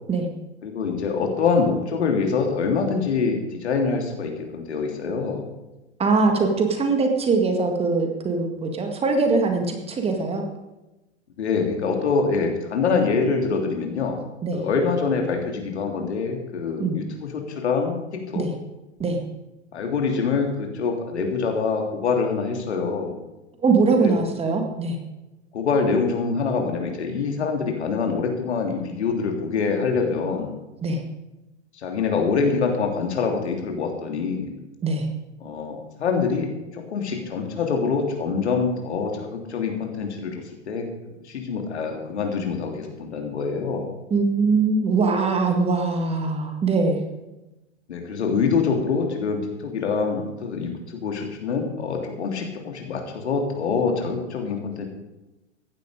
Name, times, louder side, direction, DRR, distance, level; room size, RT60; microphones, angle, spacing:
voice 1, 0.6-5.5 11.4-14.2 14.5-18.5 19.7-23.1 24.0-24.1 25.5-30.5 31.8-34.5 35.4-36.5 36.7-40.3 40.7-40.9 41.3-43.9 47.9-54.8, left 5 dB, 65° left, 2 dB, 3.2 m, -25 dB
voice 2, 6.0-10.4 14.4-14.6 16.8-17.0 18.4-18.5 19.0-19.2 23.6-25.0 30.8-31.0 34.8-35.1 44.1-47.0, right 4 dB, 15° right, 4 dB, 1.9 m, -22 dB
15.5 x 11.0 x 5.1 m, 1.0 s
figure-of-eight pair, 105°, 36 cm